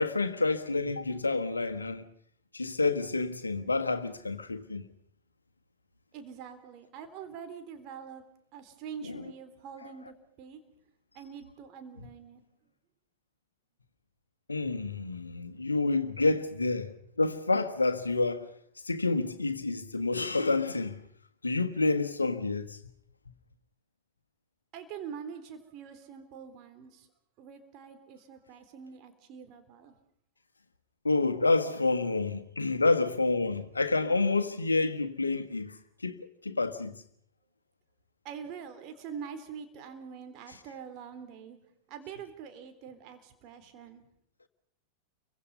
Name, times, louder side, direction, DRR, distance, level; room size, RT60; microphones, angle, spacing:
voice 1, 0.0-2.0 2.5-4.9 9.0-9.2 14.5-16.9 17.2-18.5 18.9-21.0 21.4-22.8 31.0-35.7 36.0-36.2 36.4-36.9, left 3 dB, 80° left, 1.5 m, -28 dB
voice 2, 6.1-8.2 8.5-10.6 11.1-12.4 24.7-27.1 27.4-30.0 38.2-41.6 41.9-44.0, right 7 dB, 40° right, 3.7 m, -44 dB
29.5 x 24.0 x 5.5 m
figure-of-eight pair, 90°, 0 cm